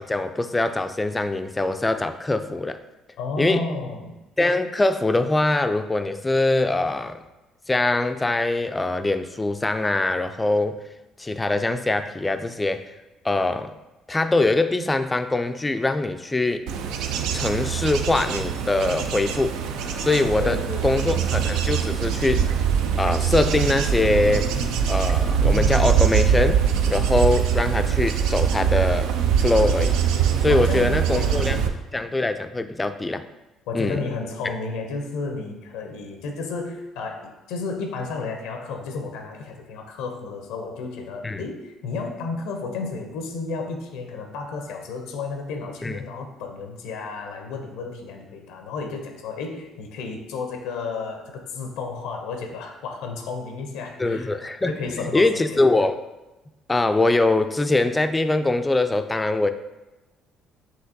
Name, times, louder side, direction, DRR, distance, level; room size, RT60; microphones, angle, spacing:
voice 1, 0.0-2.8 3.4-3.7 4.4-7.2 7.7-10.8 11.2-12.9 13.2-13.7 14.1-16.7 17.3-19.6 20.0-22.4 23.0-24.5 24.9-29.1 29.4-30.0 30.4-31.6 31.9-33.2 33.7-34.0 41.2-41.4 45.8-46.0 54.0-56.0 56.7-59.5, left 2 dB, 20° left, 9 dB, 0.3 m, -23 dB
voice 2, 3.2-4.2 20.4-21.1 30.5-31.7 33.7-54.4 54.7-55.6, left 4 dB, 80° left, 4 dB, 0.5 m, -32 dB
Bird / Insect / Wind, 16.7-31.7, right 8 dB, 80° right, 0.3 m, -23 dB
5.6 x 2.8 x 2.7 m, 1.0 s
supercardioid pair, 65°, 0 cm